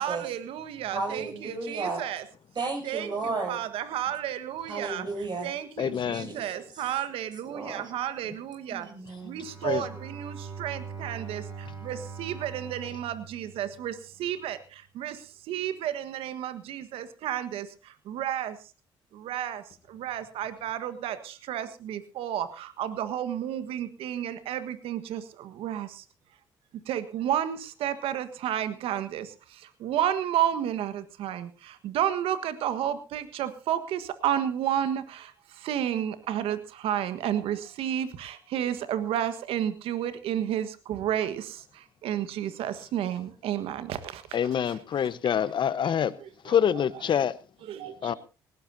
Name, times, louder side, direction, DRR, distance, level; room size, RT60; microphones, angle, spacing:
voice 1, 0.0-2.2 2.8-5.1 5.4-8.9 9.2-18.6 19.1-26.0 26.9-44.2 44.7-44.8 45.8-46.5 47.1-47.2 47.6-48.1, right 10 dB, 75° right, 1.5 m, -32 dB
voice 2, 0.9-2.0 2.6-3.6 4.7-5.5 5.8-6.4 6.7-6.8 7.5-7.9 8.7-9.4 9.7-9.9, right 3 dB, 45° right, 7.1 m, -34 dB
voice 3, 5.8-6.3 9.6-9.8 44.3-46.1 46.4-47.3 48.0-48.1, left 8 dB, 55° left, 1.1 m, -26 dB
Bowed string instrument, 9.2-14.2, right 5 dB, 30° right, 7.0 m, -42 dB
19.0 x 18.0 x 2.8 m
hypercardioid pair, 55°, 10 cm